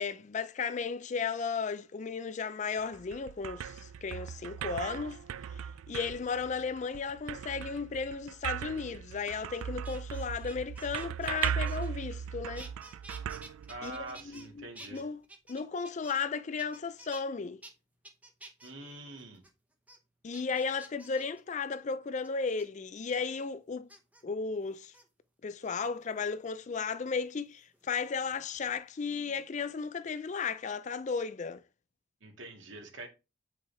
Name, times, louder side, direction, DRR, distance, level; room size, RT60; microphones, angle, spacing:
voice 1, 0.0-5.2 5.5-12.7 13.8-15.2 15.5-17.6 20.2-23.9 24.2-24.9 25.4-31.6, left 5 dB, 35° left, 0.4 m, -35 dB
sound 1, 2.8-14.3, right 8 dB, 85° right, 0.3 m, -38 dB
sound 2, 9.5-12.3 12.5-14.5 14.7-16.3 16.6-17.2 17.6-17.7 18.0-18.7 19.2-19.5 19.9-20.0 20.3-21.4 22.2-22.6 23.9-24.2 24.8-25.0 25.6-26.2 27.6-28.8 29.1-29.5, right 2 dB, 5° right, 0.8 m, -51 dB
voice 2, 13.7-15.1 18.6-19.4 32.2-33.1, right 2 dB, 70° right, 2.1 m, -45 dB
8.5 x 5.5 x 3.4 m
head